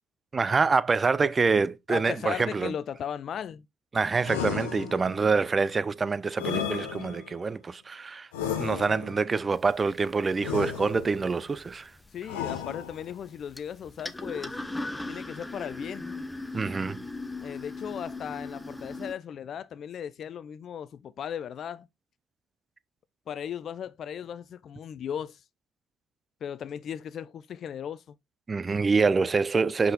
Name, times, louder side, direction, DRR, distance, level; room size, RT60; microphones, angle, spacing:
voice 1, 0.3-2.7 3.9-8.3 8.6-11.9 16.5-17.1 28.5-29.9, right 4 dB, 30° right, 0.6 m, -26 dB
voice 2, 1.9-3.6 12.1-14.6 15.1-16.1 17.4-21.9 23.3-25.4 26.4-28.1, left 8 dB, 50° left, 0.5 m, -37 dB
sound 1, 4.2-5.3 6.4-7.4 8.3-9.3 10.4-11.3 12.3-13.2, left 8 dB, 80° left, 1.1 m, -34 dB
sound 2, 9.5-19.1, left 2 dB, 10° left, 0.9 m, -40 dB
5.7 x 5.2 x 4.0 m
hypercardioid pair, 55°, 0 cm